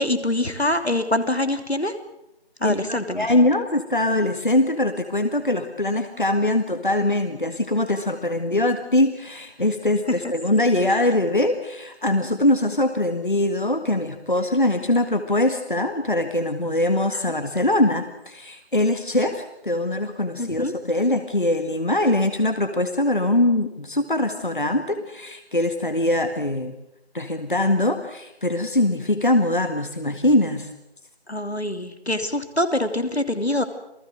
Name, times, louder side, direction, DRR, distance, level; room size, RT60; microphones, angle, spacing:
voice 1, 0.0-1.9 2.6-3.3 10.1-10.3 10.9-11.0 20.4-20.7 31.3-33.6, left 1 dB, 80° left, 8 dB, 3.0 m, -24 dB
voice 2, 2.6-26.8 27.1-30.7, left 1 dB, 50° left, 8 dB, 1.9 m, -22 dB
28.0 x 18.0 x 7.8 m, 0.85 s
figure-of-eight pair, 175°, 32 cm